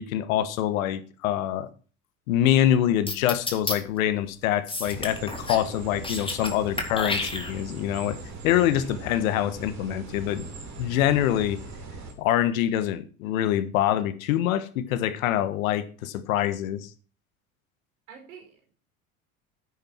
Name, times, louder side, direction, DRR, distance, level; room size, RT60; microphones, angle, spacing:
voice 1, 0.0-1.7 2.3-8.2 8.4-10.4 10.8-11.6 12.2-16.9, left 11 dB, 75° left, 1.4 m, -25 dB
sound 1, 3.1-3.8 4.7-5.7 5.9-6.5 6.8-7.8, left 2 dB, 10° left, 3.1 m, -30 dB
sound 2, 4.8-12.1, right 3 dB, 40° right, 4.4 m, -40 dB
voice 2, 18.1-18.7, right 6 dB, 80° right, 5.1 m, -48 dB
10.5 x 9.2 x 4.6 m
hypercardioid pair, 75°, 42 cm